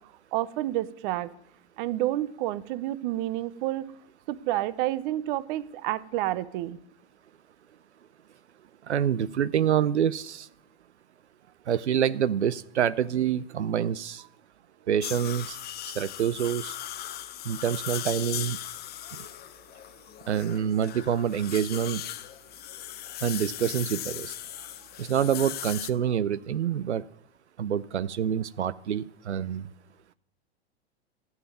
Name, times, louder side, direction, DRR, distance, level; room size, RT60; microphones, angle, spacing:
voice 1, 0.3-1.3 1.8-3.9 4.3-6.8, right 15 dB, 50° right, 17 dB, 0.9 m, -29 dB
voice 2, 8.9-10.5 11.7-14.2 14.9-15.6 15.9-16.8 17.5-18.6 20.3-22.0 23.2-24.3 25.0-27.0 27.6-29.7, right 9 dB, 90° right, 16 dB, 0.5 m, -27 dB
sound 1, 15.0-25.9, left 12 dB, 30° left, 1.0 m, -38 dB
15.0 x 7.2 x 9.4 m, 0.77 s
hypercardioid pair, 100°, 33 cm